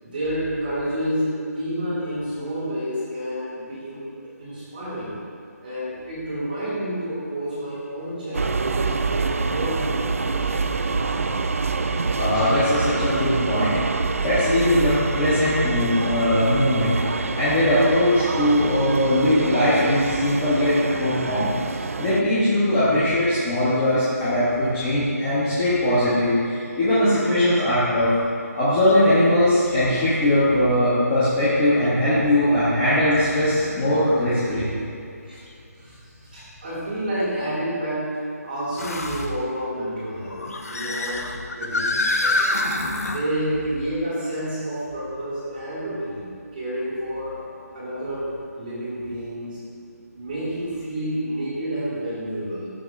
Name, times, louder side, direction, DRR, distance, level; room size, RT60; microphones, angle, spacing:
voice 1, 0.0-4.1 4.4-5.2 5.6-11.3 12.3-12.4 35.2-35.4 35.8-38.2 38.4-42.5 43.1-47.4 47.7-49.6 50.1-52.7, equal, 30° right, -10 dB, 1.9 m, -29 dB
sound 1, 8.3-22.2, right 4 dB, 55° right, 0.4 m, -26 dB
voice 2, 12.2-13.8 14.2-16.9 17.3-21.5 22.0-28.1 28.5-34.7, left 1 dB, 10° left, -12 dB, 0.7 m, -20 dB
sound 2, 28.9-29.0 29.7-29.8 31.8-31.9 35.5-35.6 38.8-39.3 40.3-43.2, left 2 dB, 60° left, 0.7 m, -26 dB
13.5 x 6.0 x 2.4 m, 2.5 s
hypercardioid pair, 175°, 9 cm